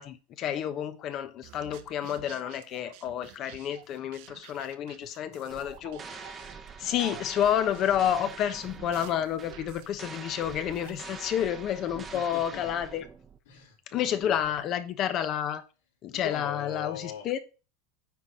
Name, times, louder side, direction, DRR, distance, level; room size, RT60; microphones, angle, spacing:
voice 1, 0.0-6.4 6.8-13.0 13.9-15.6 16.0-17.4, left 10 dB, 35° left, 1.0 m, -30 dB
sound 1, 1.4-11.0, right 14 dB, 60° right, 1.0 m, -50 dB
sound 2, 5.5-13.4, right 5 dB, 15° right, 1.0 m, -45 dB
voice 2, 11.9-12.8 13.5-14.4 16.1-17.4, left 8 dB, 80° left, 3.8 m, -41 dB
9.5 x 4.2 x 6.3 m
supercardioid pair, 160°, 0 cm